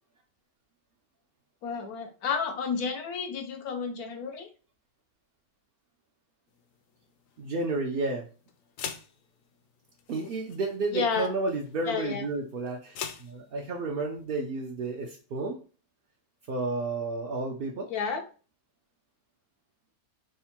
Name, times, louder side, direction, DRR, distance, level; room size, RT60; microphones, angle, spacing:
voice 1, 1.6-4.5 10.9-11.3 11.8-12.3 17.9-18.2, left 5 dB, 90° left, 4 dB, 1.2 m, -31 dB
sound 1, 6.5-14.2, left 8 dB, 70° left, 0.9 m, -45 dB
voice 2, 7.4-8.3 10.1-15.6 16.5-18.1, right 3 dB, 65° right, 0 dB, 0.5 m, -32 dB
3.6 x 2.1 x 4.2 m, 0.36 s
omnidirectional pair, 1.6 m